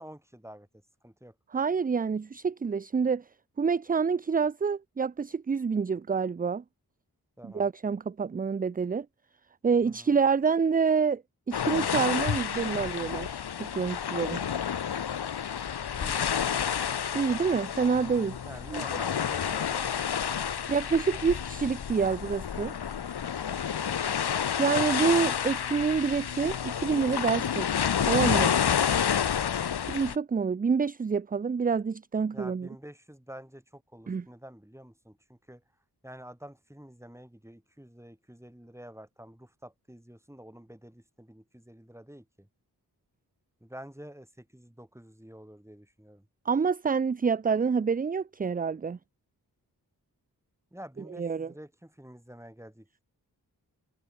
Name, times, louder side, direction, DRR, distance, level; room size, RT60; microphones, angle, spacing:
voice 1, 0.0-1.3 7.4-7.7 9.8-10.2 16.0-16.3 18.4-20.1 20.6-20.7 23.7-24.0 29.4-29.7 32.3-35.6 36.0-42.5 43.6-46.3 50.7-52.9, equal, 5° right, 5.7 m, -48 dB
voice 2, 1.5-3.3 3.6-6.6 7.4-9.1 9.6-11.2 11.5-14.4 17.1-18.4 18.7-18.8 20.7-22.7 24.6-27.7 28.1-28.5 29.9-32.7 34.1-34.2 46.5-49.0 51.1-51.5, right 5 dB, 20° right, 0.4 m, -27 dB
sound 1, 11.5-30.2, left 8 dB, 75° left, 1.3 m, -29 dB
cardioid pair, 40°, 40 cm